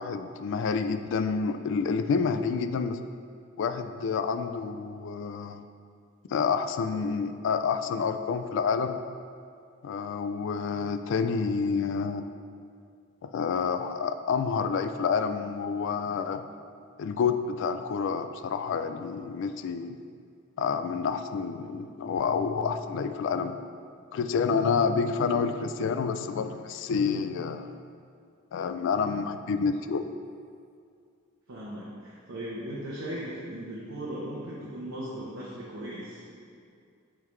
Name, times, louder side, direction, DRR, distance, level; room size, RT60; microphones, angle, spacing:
voice 1, 0.0-3.0 3.6-5.6 6.3-9.0 9.8-12.3 13.2-16.4 17.0-20.0 20.6-23.6 24.1-27.7 28.5-30.1, left 5 dB, 60° left, 10 dB, 0.3 m, -28 dB
voice 2, 31.5-36.2, right 1 dB, 70° right, -7 dB, 0.9 m, -37 dB
8.7 x 3.7 x 3.2 m, 2.3 s
head